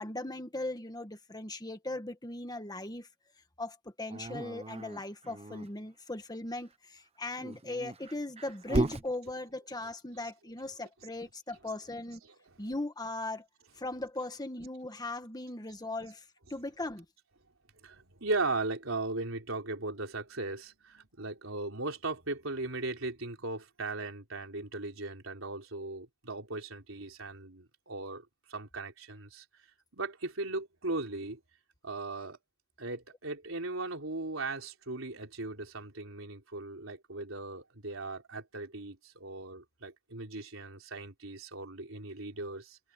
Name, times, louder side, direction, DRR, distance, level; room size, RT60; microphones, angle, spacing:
voice 1, 0.0-3.1 3.6-12.2 12.6-13.4 13.8-16.2 16.5-17.0, left 2 dB, 20° left, 1.7 m, -38 dB
Dog, 4.1-5.7 7.3-9.1, right 2 dB, 30° right, 1.3 m, -35 dB
voice 2, 12.2-12.6 17.8-29.4 29.9-31.4 31.8-32.4 32.8-42.8, right 2 dB, 80° right, 3.9 m, -38 dB
head